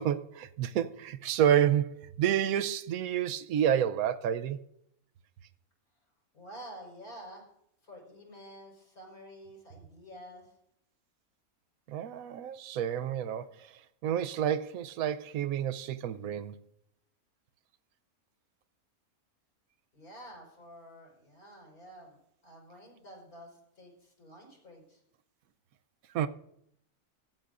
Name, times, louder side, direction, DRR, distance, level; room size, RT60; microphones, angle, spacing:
voice 1, 0.0-4.6 11.9-13.7 14.0-16.6 26.1-26.3, right 10 dB, 75° right, 1.1 m, -29 dB
voice 2, 6.3-7.4 7.8-10.5 19.9-22.2 22.4-25.0, equal, 75° left, 5.6 m, -49 dB
16.5 x 13.0 x 2.6 m
omnidirectional pair, 1.5 m